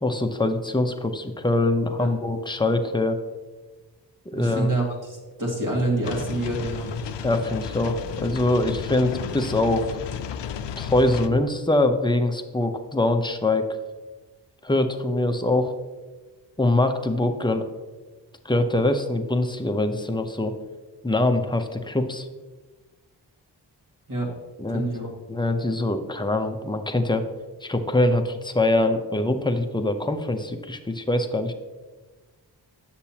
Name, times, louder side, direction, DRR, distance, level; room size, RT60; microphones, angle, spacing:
voice 1, 0.0-3.2 4.3-4.7 7.2-9.9 10.8-13.7 14.6-15.7 16.6-17.6 18.4-20.5 21.0-22.3 24.6-24.9 25.3-27.2 27.6-31.5, left 2 dB, 10° left, 6 dB, 0.7 m, -23 dB
voice 2, 4.3-6.9 24.1-24.3 24.7-25.1, right 2 dB, 45° right, -1 dB, 2.2 m, -27 dB
sound 1, 6.0-11.3, left 8 dB, 70° left, 0.5 m, -33 dB
8.0 x 6.8 x 2.9 m, 1.3 s
cardioid pair, 45°, 44 cm